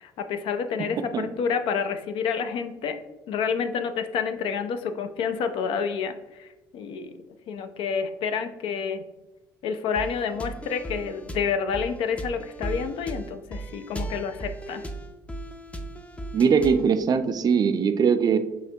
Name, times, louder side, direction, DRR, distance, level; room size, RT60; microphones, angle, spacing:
voice 1, 0.0-3.0 3.3-9.0 9.6-14.9, left 6 dB, 65° left, 9 dB, 0.4 m, -29 dB
sound 1, 10.0-16.9, right 1 dB, 10° left, 0.5 m, -37 dB
voice 2, 16.3-18.4, right 6 dB, 45° right, 9 dB, 0.4 m, -21 dB
5.7 x 2.8 x 2.7 m, 1.0 s
hypercardioid pair, 65°, 10 cm